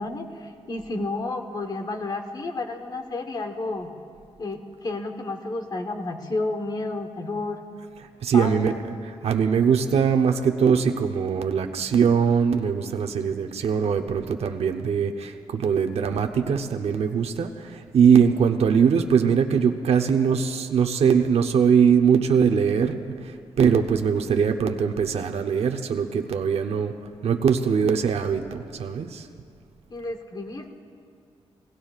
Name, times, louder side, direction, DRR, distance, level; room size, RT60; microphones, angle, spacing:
voice 1, 0.0-3.9 4.4-7.6 8.3-8.8 29.9-30.7, left 2 dB, 40° left, 5 dB, 1.1 m, -31 dB
voice 2, 8.2-8.7 9.0-26.9 27.2-29.3, right 7 dB, 70° right, 5 dB, 0.7 m, -21 dB
27.0 x 18.0 x 2.4 m, 2.3 s
wide cardioid pair, 160°, 11 cm